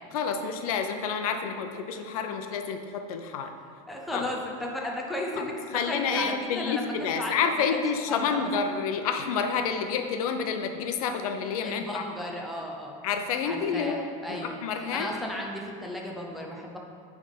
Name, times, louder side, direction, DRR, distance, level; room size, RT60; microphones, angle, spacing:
voice 1, 0.1-3.5 4.1-4.2 5.4-5.5 5.7-12.0 13.0-15.2, left 6 dB, 90° left, 6 dB, 0.7 m, -29 dB
voice 2, 3.9-5.5 5.8-8.5 11.6-13.0 13.4-14.6 14.9-16.8, left 1 dB, ahead, -2 dB, 0.5 m, -35 dB
8.5 x 3.5 x 5.3 m, 2.2 s
supercardioid pair, 175°, 18 cm